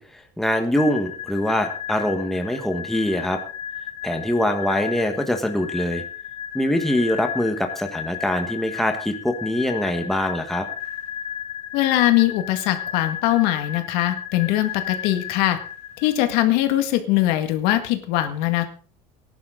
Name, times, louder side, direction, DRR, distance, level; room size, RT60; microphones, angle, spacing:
voice 1, 0.0-3.4 4.0-6.0 6.5-10.7, left 1 dB, ahead, 5 dB, 1.4 m, -23 dB
sound 1, 0.7-16.3, left 9 dB, 40° left, 2.9 m, -34 dB
voice 2, 11.7-15.6 16.0-18.6, left 14 dB, 75° left, 8 dB, 2.0 m, -21 dB
18.5 x 11.0 x 3.9 m, 0.39 s
cardioid pair, 165°, 16 cm